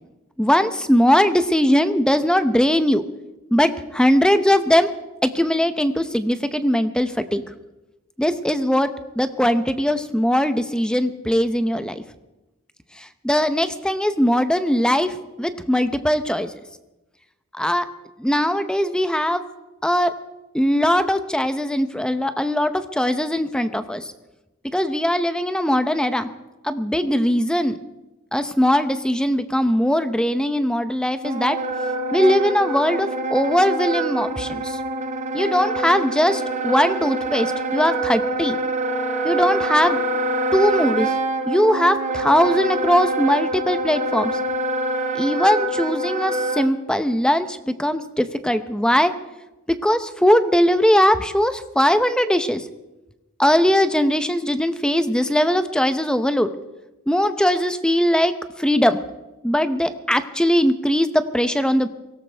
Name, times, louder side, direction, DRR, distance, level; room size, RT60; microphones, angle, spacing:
voice 1, 0.4-3.0 3.5-4.9 5.2-7.4 8.2-8.9 9.2-12.0 13.2-16.5 17.6-17.9 18.2-19.4 19.8-20.1 20.5-24.0 24.7-26.3 26.6-27.8 28.3-31.6 32.1-34.8 35.3-38.6 39.2-40.0 40.5-41.1 41.5-44.3 45.1-49.1 49.7-52.6 53.4-56.5 57.1-58.3 58.6-59.0 59.4-61.9, equal, 5° left, 10 dB, 0.8 m, -20 dB
Wind instrument woodwind instrument, 31.2-46.7, right 2 dB, 35° right, 1.2 m, -25 dB
23.5 x 17.5 x 3.5 m, 1.0 s
head